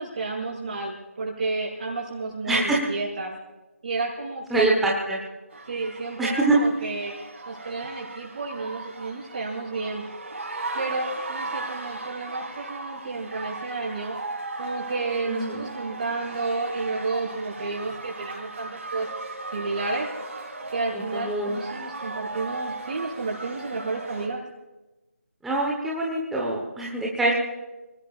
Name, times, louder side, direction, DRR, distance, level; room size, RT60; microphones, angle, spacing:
voice 1, 0.0-3.3 3.8-4.9 5.7-7.1 7.4-10.0 10.7-14.2 14.6-19.1 19.5-20.1 20.7-24.4 27.2-27.3, right 3 dB, 35° right, -3 dB, 6.7 m, -31 dB
voice 2, 2.5-2.8 4.5-5.2 6.2-6.6 15.3-15.7 20.9-21.6 25.4-27.3, right 2 dB, ahead, -4 dB, 1.2 m, -24 dB
sound 1, 5.5-24.3, right 2 dB, 55° right, 6.4 m, -37 dB
29.5 x 18.5 x 2.5 m, 1.1 s
figure-of-eight pair, 165°, 8 cm